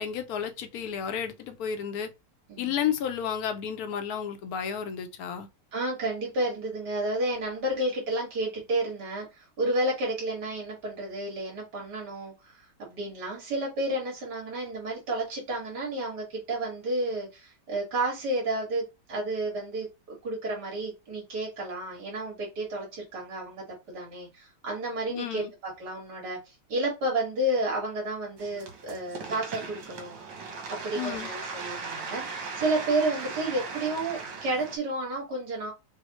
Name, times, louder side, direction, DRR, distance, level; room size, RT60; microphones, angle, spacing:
voice 1, 0.0-2.1 2.6-5.5 25.1-25.5 30.9-31.3, left 8 dB, 65° left, 1.2 m, -32 dB
voice 2, 5.7-12.5 12.8-26.4 26.7-30.2 30.7-35.7, right 1 dB, 65° right, 2.7 m, -31 dB
sound 1, 28.4-34.8, right 4 dB, 85° right, 1.8 m, -38 dB
6.3 x 2.3 x 3.1 m
omnidirectional pair, 1.9 m